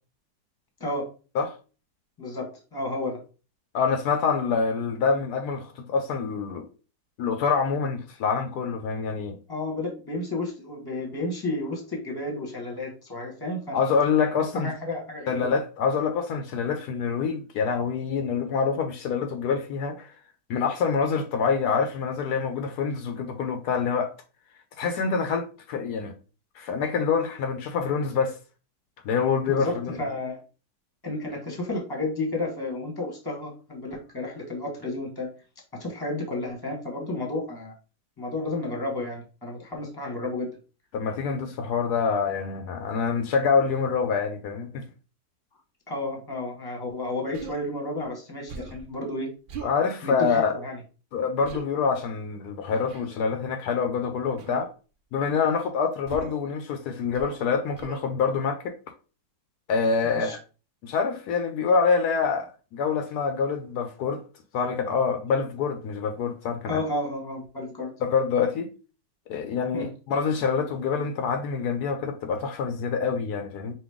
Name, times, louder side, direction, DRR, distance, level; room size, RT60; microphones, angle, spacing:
voice 1, 2.2-3.2 9.5-13.9 14.5-15.5 29.5-30.4 31.0-35.3 35.8-37.7 38.2-40.5 45.9-49.3 50.0-50.8 60.0-60.4 66.6-67.9 69.7-69.9, left 2 dB, 15° left, 1.3 m, -32 dB
voice 2, 3.7-6.7 7.2-9.4 13.7-14.7 15.3-20.1 20.5-24.1 24.8-26.1 26.6-28.4 29.0-30.0 40.9-44.8 49.6-50.5 51.1-54.7 55.1-58.8 59.7-60.4 60.8-64.2 64.5-66.8 68.0-68.7 69.3-73.7, left 5 dB, 75° left, 1.1 m, -26 dB
Human voice, 47.3-47.6 48.5-48.9 49.5-49.8 51.4-51.7 52.9-53.2 54.4-54.7 56.1-56.4 57.1-57.4 57.8-58.1, right 5 dB, 75° right, 0.4 m, -39 dB
5.3 x 2.6 x 3.5 m
omnidirectional pair, 1.7 m